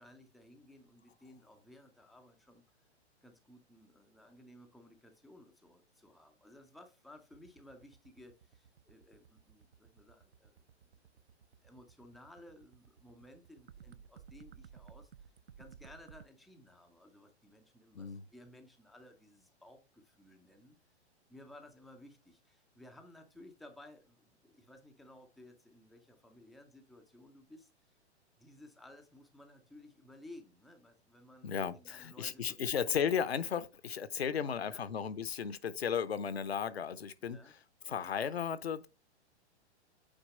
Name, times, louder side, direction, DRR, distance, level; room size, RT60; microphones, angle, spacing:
voice 1, 0.0-2.6 3.2-10.6 11.6-20.8 21.3-27.9 28.4-32.8 34.3-34.9 37.2-37.5, left 1 dB, ahead, 0.4 m, -57 dB
sound 1, 7.2-16.2, right 7 dB, 55° right, 0.6 m, -57 dB
voice 2, 31.4-37.4 37.9-38.9, left 7 dB, 65° left, 0.8 m, -35 dB
8.9 x 4.6 x 3.1 m
figure-of-eight pair, 110°, 34 cm